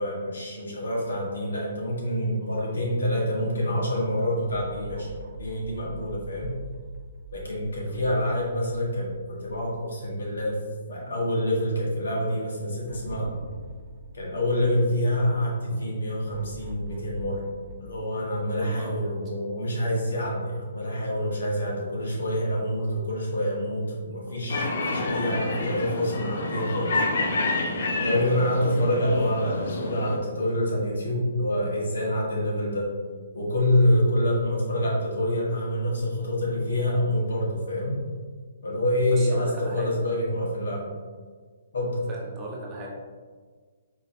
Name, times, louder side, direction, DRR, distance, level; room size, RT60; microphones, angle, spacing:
voice 1, 0.0-5.1 5.4-6.5 7.3-10.6 10.9-13.3 14.1-17.4 17.8-27.0 28.0-32.9 33.3-38.0 38.6-40.9 41.7-42.0, equal, 85° left, -4 dB, 1.4 m, -26 dB
sound 1, 4.5-10.8 11.2-11.3 12.9-15.3 16.3-19.1, right 2 dB, 55° right, 0.5 m, -43 dB
voice 2, 18.6-19.1 22.8-22.9 24.3-24.4 39.1-39.9 42.1-42.9, right 2 dB, 20° right, -2 dB, 0.7 m, -38 dB
sound 2, 24.5-30.2, left 2 dB, 60° left, 0.5 m, -28 dB
4.6 x 3.0 x 2.6 m, 1.5 s
hypercardioid pair, 155°, 0 cm